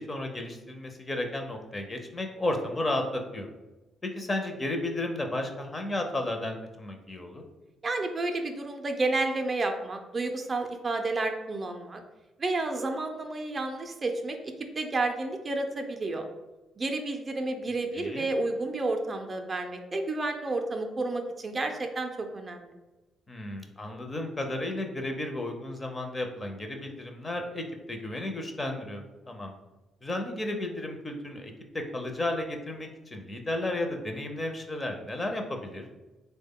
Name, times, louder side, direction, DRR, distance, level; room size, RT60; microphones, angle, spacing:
voice 1, 0.0-3.5 4.0-7.4 17.9-18.3 23.3-29.5 30.0-31.5 31.9-35.9, left 1 dB, 25° left, 4 dB, 0.5 m, -33 dB
voice 2, 7.8-12.0 12.4-16.3 16.8-22.7, right 2 dB, 35° right, 5 dB, 0.4 m, -31 dB
3.4 x 2.1 x 3.6 m, 1.1 s
cardioid pair, 90°, 0 cm